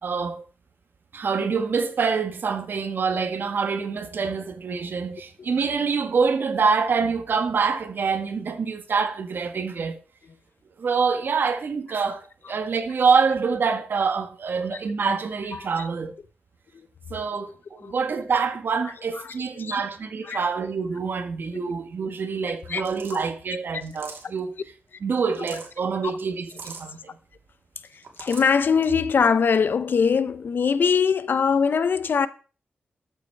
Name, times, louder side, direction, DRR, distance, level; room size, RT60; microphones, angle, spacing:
voice 1, 0.0-0.4 1.1-10.0 10.8-12.2 12.5-16.1 17.1-17.5 17.9-24.5 25.0-27.0, right 5 dB, 65° right, 1.6 m, -25 dB
voice 2, 15.5-15.9 17.8-17.9 19.2-19.8 20.2-20.4 22.7-22.8 26.0-26.1 28.2-32.3, left 6 dB, 65° left, 0.8 m, -22 dB
sound 1, 22.8-23.3 23.8-24.4 25.2-25.7 26.4-26.9 27.9-28.5, right 4 dB, 80° right, 3.0 m, -41 dB
13.5 x 7.4 x 4.6 m
wide cardioid pair, 125°, 4 cm